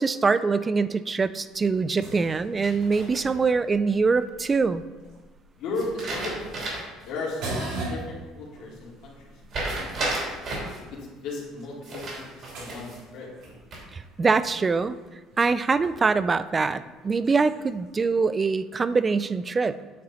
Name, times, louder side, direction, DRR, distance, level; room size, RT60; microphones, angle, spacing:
voice 1, 0.0-4.8 13.9-15.0 15.4-19.9, right 4 dB, 20° right, 14 dB, 0.3 m, -24 dB
sound 1, 1.4-18.4, right 2 dB, 70° right, 2.6 m, -43 dB
sound 2, 2.6-3.5 5.7-7.0 7.4-7.5 9.5-10.8 11.8-13.0 13.4-14.0, right 2 dB, 40° right, 3.1 m, -33 dB
voice 2, 5.6-6.5 7.0-10.3 10.9-13.3, left 2 dB, 60° left, -3 dB, 2.5 m, -36 dB
9.2 x 7.5 x 4.2 m, 1.3 s
cardioid pair, 160°, 0 cm